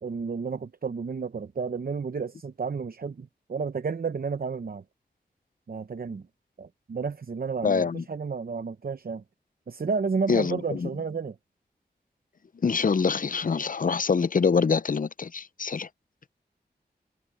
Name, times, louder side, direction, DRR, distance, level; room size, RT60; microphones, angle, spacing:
voice 1, 0.0-4.8 5.7-6.3 6.6-9.2 9.7-11.4, right 5 dB, 60° right, 0.8 m, -31 dB
voice 2, 7.6-8.0 10.3-10.9 12.6-15.9, left 5 dB, 55° left, 0.6 m, -25 dB
wide cardioid pair, 60°, 17 cm